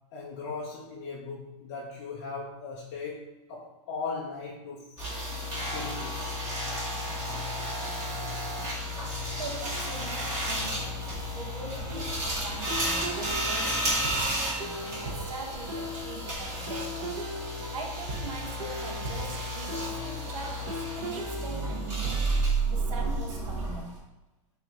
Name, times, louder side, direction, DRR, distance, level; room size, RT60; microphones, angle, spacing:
voice 1, 0.1-5.1 5.7-6.3, left 4 dB, 30° left, -3 dB, 0.4 m, -38 dB
sound 1, 5.0-24.0, right 1 dB, 20° right, 1.2 m, -32 dB
voice 2, 9.4-17.2 17.7-22.3 22.7-23.9, right 4 dB, 90° right, 2 dB, 1.0 m, -42 dB
sound 2, 11.9-22.5, equal, 35° right, 0.7 m, -39 dB
6.0 x 2.5 x 2.8 m, 0.98 s
supercardioid pair, 175°, 17 cm